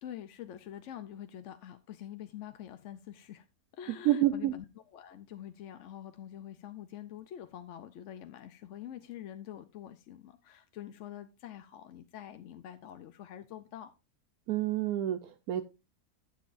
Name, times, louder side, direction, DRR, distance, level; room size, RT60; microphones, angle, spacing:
voice 1, 0.0-3.5 3.7-4.6 4.9-13.9, left 11 dB, 65° left, 0.8 m, -46 dB
voice 2, 3.9-4.5 14.5-15.6, right 13 dB, 80° right, 1.1 m, -29 dB
12.0 x 7.5 x 2.5 m
omnidirectional pair, 1.5 m